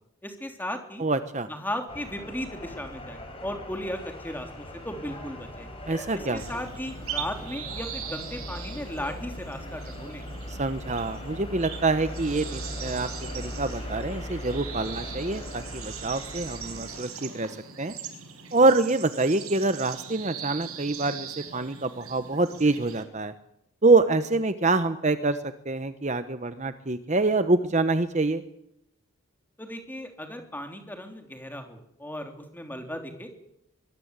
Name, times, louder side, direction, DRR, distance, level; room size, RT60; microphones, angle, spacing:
voice 1, 0.2-1.0 1.5-5.7 6.1-10.2 29.6-33.3, left 1 dB, 10° left, 5 dB, 3.3 m, -36 dB
voice 2, 1.0-1.5 5.9-6.4 10.5-13.1 13.3-17.9 18.5-23.3 23.8-25.4 25.6-28.4, right 3 dB, 30° right, 11 dB, 1.0 m, -25 dB
sound 1, 1.9-17.0, left 1 dB, 25° left, 6.2 m, -39 dB
sound 2, 6.4-23.0, right 7 dB, 80° right, 5.2 m, -40 dB
23.0 x 22.0 x 8.3 m, 0.78 s
head